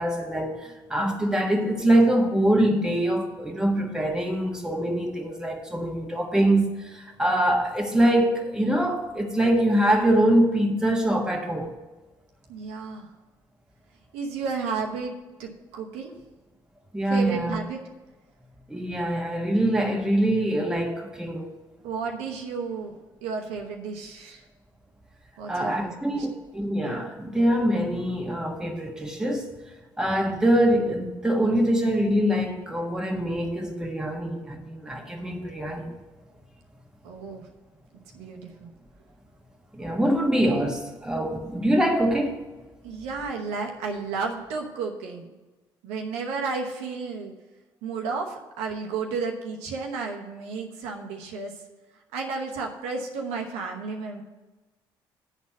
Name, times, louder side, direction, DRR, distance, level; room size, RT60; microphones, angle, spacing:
voice 1, 0.0-11.7 16.9-17.6 18.7-21.5 25.5-29.5 30.0-36.0 39.7-42.4, right 1 dB, 5° right, 1.5 m, -24 dB
voice 2, 12.5-13.1 14.1-15.1 15.4-16.1 17.1-17.8 21.8-22.9 23.2-24.4 25.4-26.3 37.0-37.5 38.1-38.7 42.8-45.3 45.8-47.3 47.8-51.5 52.1-54.2, right 4 dB, 80° right, 0.9 m, -32 dB
9.0 x 4.2 x 7.3 m
hypercardioid pair, 55°, 11 cm